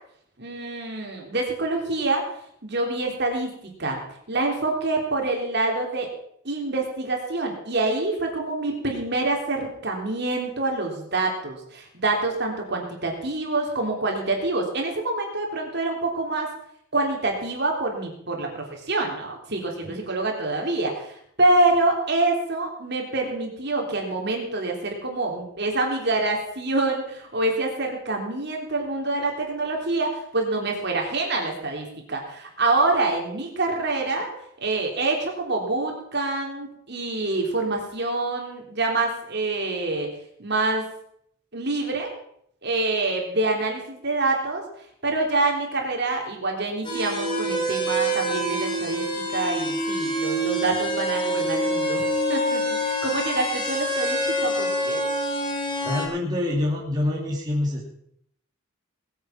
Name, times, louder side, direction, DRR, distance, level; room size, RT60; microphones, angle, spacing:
voice 1, 0.4-2.2 2.6-4.0 4.3-6.1 6.4-16.5 16.9-34.3 34.6-40.1 40.4-40.9 41.5-42.1 42.6-44.6 45.0-52.0 52.3-55.1, right 2 dB, 50° right, 1 dB, 3.5 m, -26 dB
sound 1, 46.8-56.1, equal, 25° left, 3.2 m, -26 dB
voice 2, 55.8-57.8, left 1 dB, 20° right, -3 dB, 2.6 m, -26 dB
19.5 x 9.1 x 5.9 m, 0.70 s
head